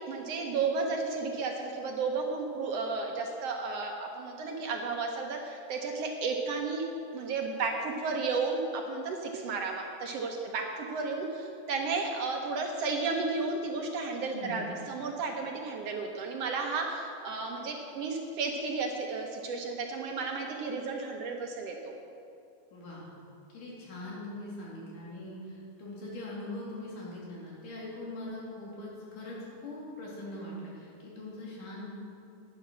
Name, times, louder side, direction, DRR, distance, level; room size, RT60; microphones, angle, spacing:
voice 1, 0.1-6.8 7.1-21.9, right 4 dB, 70° right, 2 dB, 1.6 m, -33 dB
voice 2, 14.3-14.7 22.7-23.1 23.5-29.4 29.6-31.9, left 1 dB, 85° left, -5 dB, 4.2 m, -41 dB
11.5 x 9.5 x 6.2 m, 2.6 s
omnidirectional pair, 3.7 m